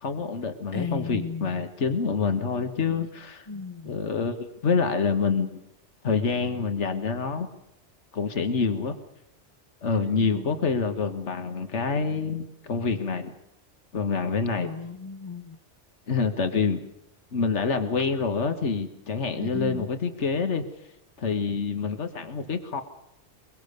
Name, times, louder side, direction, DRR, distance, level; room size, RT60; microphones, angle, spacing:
voice 1, 0.0-3.5 3.8-5.6 6.0-7.5 8.1-9.0 9.8-13.3 13.9-14.7 16.1-16.8 17.3-20.6 21.2-22.8, left 5 dB, 75° left, 7 dB, 1.8 m, -27 dB
voice 2, 0.7-1.5 3.5-4.0 9.9-10.4 14.6-15.5 19.4-19.9, left 4 dB, 30° left, 12 dB, 1.1 m, -35 dB
23.5 x 22.5 x 6.7 m, 0.83 s
omnidirectional pair, 1.2 m